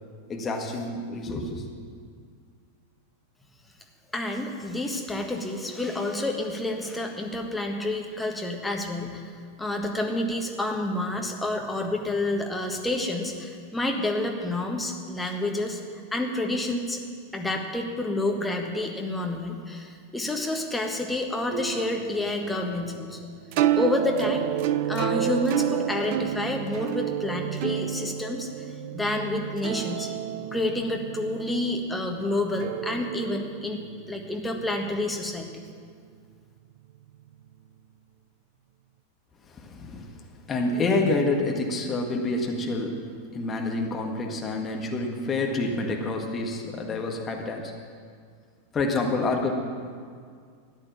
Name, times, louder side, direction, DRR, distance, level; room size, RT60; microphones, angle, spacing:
voice 1, 0.3-1.6 39.5-40.2 40.5-43.0 43.3-47.7 48.7-49.6, left 2 dB, 20° left, 1 dB, 1.7 m, -28 dB
voice 2, 4.1-9.3 9.6-15.8 16.1-17.0 17.3-23.2 23.8-24.5 24.9-28.7 28.9-30.1 30.5-35.4, left 2 dB, 5° left, 2 dB, 1.5 m, -29 dB
sound 1, 21.5-35.5, right 11 dB, 45° right, 0.5 m, -30 dB
13.5 x 9.8 x 7.3 m, 2.1 s
figure-of-eight pair, 90°, 0 cm